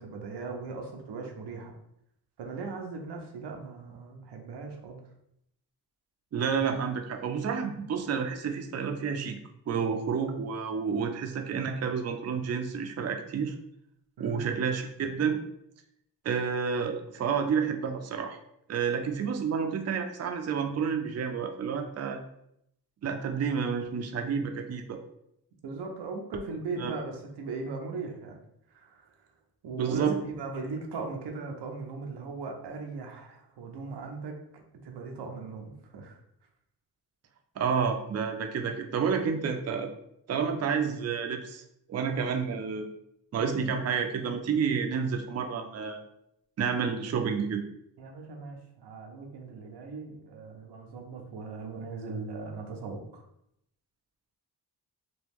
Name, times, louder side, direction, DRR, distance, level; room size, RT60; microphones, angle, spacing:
voice 1, 0.0-1.7 2.4-5.0 14.2-14.5 25.6-28.4 28.7-29.1 29.6-34.4 34.8-36.2 48.0-53.2, right 4 dB, 90° right, 2 dB, 0.7 m, -38 dB
voice 2, 6.3-9.4 9.7-13.5 14.2-15.4 16.2-18.4 18.7-22.2 23.0-25.0 26.8-26.9 29.8-30.2 37.6-39.9 40.3-41.6 41.9-42.8 43.3-46.0 46.6-47.6, right 6 dB, 40° right, 5 dB, 0.4 m, -30 dB
3.0 x 2.3 x 3.4 m, 0.76 s
cardioid pair, 70°, 40 cm